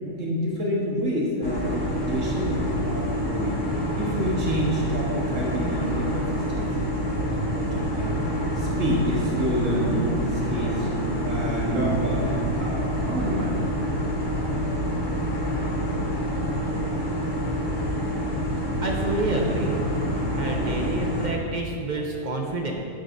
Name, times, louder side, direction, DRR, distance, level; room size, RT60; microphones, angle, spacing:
voice 1, 0.0-10.9 11.2-12.8 13.1-13.6 20.5-20.7, equal, 85° right, -4 dB, 1.6 m, -28 dB
sound 1, 1.4-21.3, equal, 20° left, 0.9 m, -27 dB
voice 2, 18.8-19.8 20.1-22.9, right 2 dB, 45° right, 1 dB, 0.7 m, -29 dB
10.5 x 7.5 x 2.6 m, 2.6 s
omnidirectional pair, 1.3 m